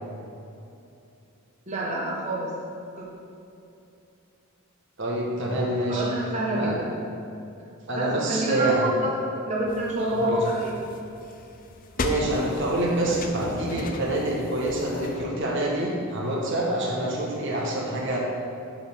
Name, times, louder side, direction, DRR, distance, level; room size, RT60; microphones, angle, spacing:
voice 1, 1.7-2.5 2.9-3.1 5.9-7.0 7.9-9.1 9.4-10.7 12.0-12.2, right 1 dB, 30° right, -5 dB, 1.2 m, -28 dB
voice 2, 5.0-6.1 6.5-6.7 7.9-8.9 10.1-10.4 12.0-18.2, right 1 dB, 55° right, -3 dB, 1.2 m, -26 dB
sound 1, 9.7-15.3, left 2 dB, 40° left, 0.5 m, -36 dB
7.8 x 7.1 x 3.5 m, 2.7 s
head